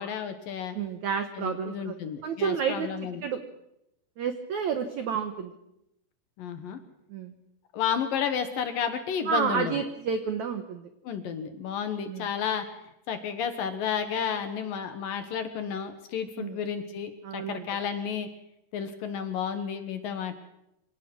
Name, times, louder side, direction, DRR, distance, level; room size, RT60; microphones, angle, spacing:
voice 1, 0.0-0.8 1.4-3.3 6.4-6.8 7.7-9.8 11.0-12.7 13.1-18.3 18.7-20.4, left 7 dB, 65° left, 8 dB, 2.6 m, -32 dB
voice 2, 0.7-1.9 2.2-2.9 3.2-3.4 4.2-5.5 7.1-7.3 9.3-10.9 12.1-12.3 16.4-16.6 17.2-17.7, right 6 dB, 75° right, 8 dB, 1.7 m, -30 dB
25.0 x 18.0 x 6.2 m, 0.85 s
omnidirectional pair, 5.0 m